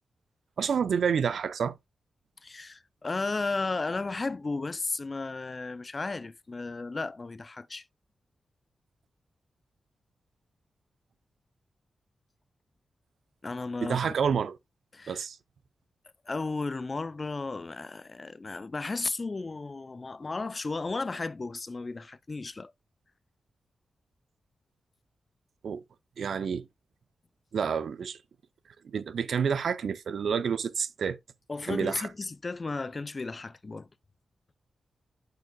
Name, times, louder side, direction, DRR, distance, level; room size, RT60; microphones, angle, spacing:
voice 1, 0.6-1.8 13.8-14.6 15.1-15.4 25.6-25.8 26.2-26.7 27.5-28.2 28.8-31.2 31.7-32.1, right 6 dB, 75° right, 0.5 m, -29 dB
voice 2, 2.4-7.8 13.4-14.1 14.9-15.3 16.3-22.7 31.5-33.9, left 3 dB, 35° left, 0.4 m, -34 dB
8.2 x 6.7 x 2.2 m
wide cardioid pair, 100°, 0 cm